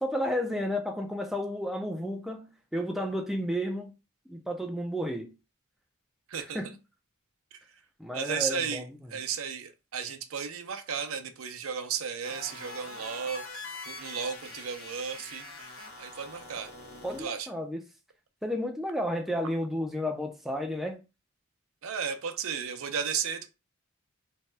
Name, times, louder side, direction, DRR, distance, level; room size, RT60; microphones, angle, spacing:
voice 1, 0.0-3.9 4.3-5.3 6.5-6.7 8.0-8.9 17.0-17.8 18.4-21.0, equal, ahead, 0.3 m, -32 dB
voice 2, 8.1-8.8 9.1-15.4 16.0-16.7 17.2-17.5 21.8-23.5, right 7 dB, 85° right, 0.5 m, -34 dB
sound 1, 12.2-17.3, left 3 dB, 75° left, 0.9 m, -44 dB
2.7 x 2.2 x 3.2 m
head